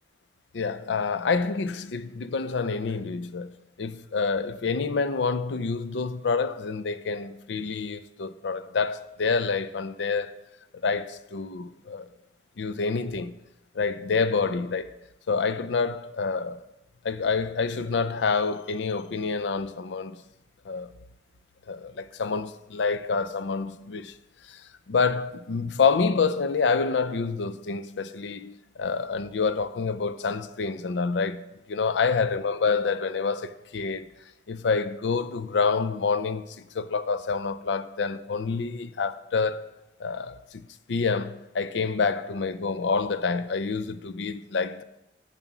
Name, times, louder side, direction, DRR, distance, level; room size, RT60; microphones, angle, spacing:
voice 1, 0.5-3.5 3.8-10.3 10.8-12.1 12.6-13.4 13.7-14.9 15.3-16.6 17.0-20.2 20.7-20.9 21.7-24.1 24.5-24.6 24.9-34.1 34.5-39.6 40.0-44.8, left 4 dB, 85° left, 0.5 m, -27 dB
7.4 x 6.9 x 6.0 m
head